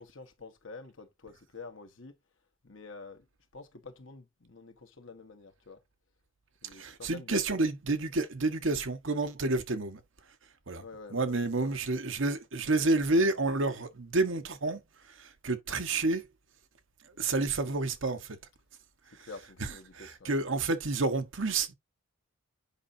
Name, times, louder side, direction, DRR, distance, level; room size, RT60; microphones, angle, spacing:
voice 1, 0.0-2.1 2.6-3.2 3.5-5.8 6.6-7.5 10.8-11.4 11.6-11.7 19.2-20.4, left 4 dB, 65° left, 1.5 m, -47 dB
voice 2, 6.7-10.0 10.7-10.8 11.1-14.8 15.2-16.2 17.2-18.4 19.2-19.3 19.9-21.7, right 2 dB, 65° right, 1.2 m, -29 dB
8.3 x 5.4 x 2.7 m
head